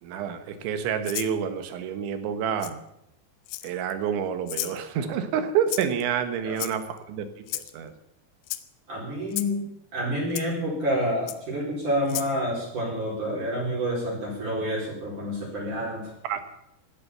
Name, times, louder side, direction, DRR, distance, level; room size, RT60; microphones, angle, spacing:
voice 1, 0.0-2.8 3.6-7.9 16.3-16.4, right 8 dB, 75° right, 10 dB, 3.7 m, -28 dB
Rattle (instrument), 1.0-1.3 2.6-2.7 3.5-3.9 4.5-4.8 5.7-6.0 6.6-7.0 7.5-7.7 8.4-8.6 9.3-9.5 10.4-10.5 11.3-11.4 12.1-12.3, left 16 dB, 80° left, 2.7 m, -33 dB
voice 2, 8.9-9.7 9.9-16.1, equal, 40° right, -5 dB, 6.0 m, -28 dB
16.5 x 12.0 x 6.9 m, 0.80 s
omnidirectional pair, 5.5 m